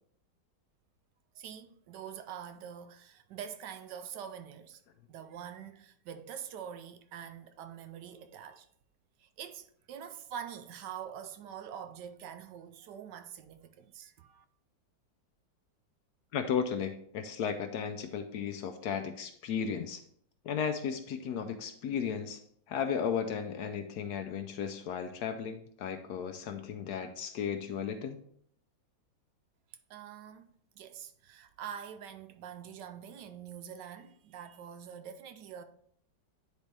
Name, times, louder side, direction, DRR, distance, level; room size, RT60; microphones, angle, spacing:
voice 1, 1.3-4.8 5.1-8.7 9.2-14.4 29.9-30.4 30.8-35.6, right 8 dB, 75° right, 1.1 m, -45 dB
voice 2, 16.3-20.0 20.4-22.4 22.7-28.2, left 7 dB, 70° left, 1.1 m, -35 dB
9.6 x 4.2 x 3.2 m
omnidirectional pair, 2.0 m